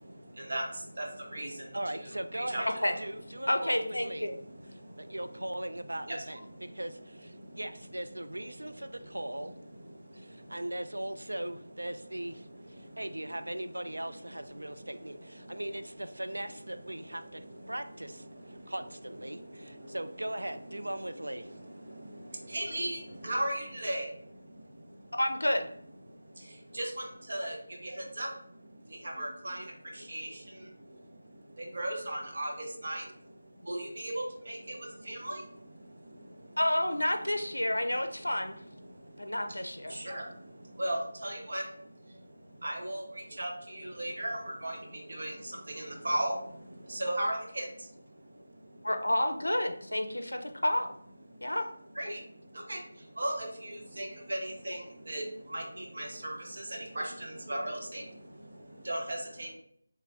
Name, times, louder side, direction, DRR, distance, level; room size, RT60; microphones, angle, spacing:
voice 1, 0.0-2.6 3.4-3.5 4.0-5.4 6.1-6.8 7.2-7.7 8.5-10.8 12.0-12.1 12.4-13.6 13.8-15.6 16.3-18.7 19.3-20.0 20.5-25.1 26.1-36.6 38.0-38.3 38.7-48.9 50.5-50.6 51.3-51.6 51.9-59.5, right 1 dB, 50° right, 0 dB, 0.7 m, -39 dB
voice 2, 1.7-4.3 5.0-9.6 10.1-21.5, right 1 dB, 70° right, 10 dB, 0.3 m, -39 dB
voice 3, 3.5-4.4 25.2-25.7 36.6-38.6 39.2-40.0 48.8-50.9 51.4-51.6, left 1 dB, 75° left, 6 dB, 0.4 m, -29 dB
3.3 x 3.2 x 2.4 m, 0.66 s
figure-of-eight pair, 165°, 0 cm